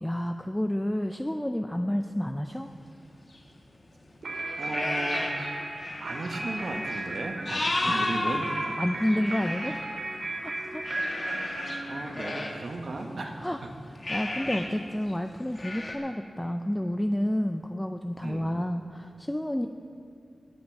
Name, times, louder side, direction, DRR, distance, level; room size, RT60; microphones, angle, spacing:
voice 1, 0.0-2.7 7.9-8.0 8.8-10.0 10.4-10.8 13.4-13.6 14.1-19.7, left 1 dB, 10° left, 6 dB, 0.5 m, -30 dB
sound 1, 3.3-3.4 4.2-5.5 5.8-9.7 10.8-13.5 14.0-14.7 15.0-15.1 15.5-15.9, left 2 dB, 40° left, 1.7 m, -33 dB
sound 2, 4.2-12.5, right 2 dB, 90° right, 2.6 m, -35 dB
voice 2, 4.6-5.5 6.0-8.5 11.8-13.7 18.2-18.6, right 2 dB, 65° right, 3 dB, 1.4 m, -36 dB
18.0 x 6.1 x 7.4 m, 2.4 s
wide cardioid pair, 95°, 0 cm